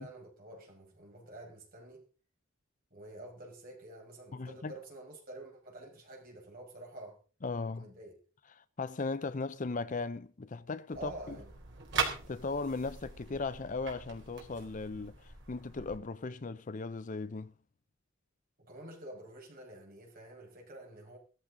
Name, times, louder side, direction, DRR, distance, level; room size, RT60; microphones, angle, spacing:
voice 1, 0.0-2.0 2.9-7.2 7.8-8.2 10.9-11.5 18.6-21.2, right 1 dB, 45° right, 5.7 m, -48 dB
voice 2, 4.3-4.7 7.4-7.9 8.6-11.4 12.3-17.5, left 3 dB, 40° left, 0.6 m, -37 dB
sound 1, 10.9-16.0, right 5 dB, 60° right, 3.6 m, -40 dB
16.0 x 14.0 x 3.9 m
head